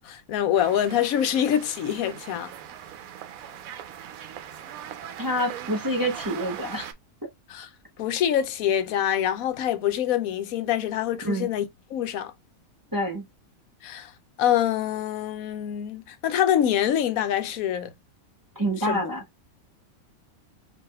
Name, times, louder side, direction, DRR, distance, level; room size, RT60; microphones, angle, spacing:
voice 1, 0.0-2.5 7.5-7.7 8.0-11.6 11.9-12.3 13.8-14.1 14.4-17.9 18.8-19.0, left 10 dB, 80° left, 1.0 m, -25 dB
sound 1, 0.5-6.9, right 10 dB, 75° right, 1.0 m, -40 dB
voice 2, 5.2-6.9 11.2-11.5 12.9-13.2 18.6-19.2, equal, 20° right, 0.6 m, -27 dB
4.7 x 2.9 x 2.3 m
omnidirectional pair, 1.5 m